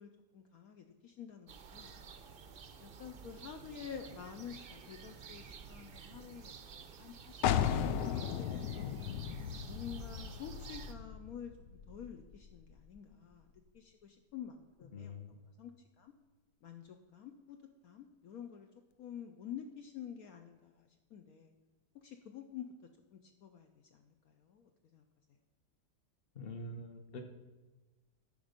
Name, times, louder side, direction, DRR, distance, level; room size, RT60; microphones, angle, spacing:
voice 1, 0.0-1.9 2.8-9.0 9.7-11.5 11.9-13.5 13.7-15.7 16.0-16.1 16.6-17.6 17.8-18.7 19.0-21.5 22.0-22.7 23.1-25.0, left 8 dB, 65° left, 5 dB, 1.1 m, -49 dB
sound 1, 1.5-10.9, right 6 dB, 60° right, 0.6 m, -52 dB
sound 2, 7.4-13.0, left 9 dB, 85° left, 1.3 m, -36 dB
voice 2, 14.9-15.3 26.3-27.2, left 1 dB, 40° left, 6 dB, 1.1 m, -45 dB
13.5 x 5.4 x 5.2 m, 1.2 s
omnidirectional pair, 1.8 m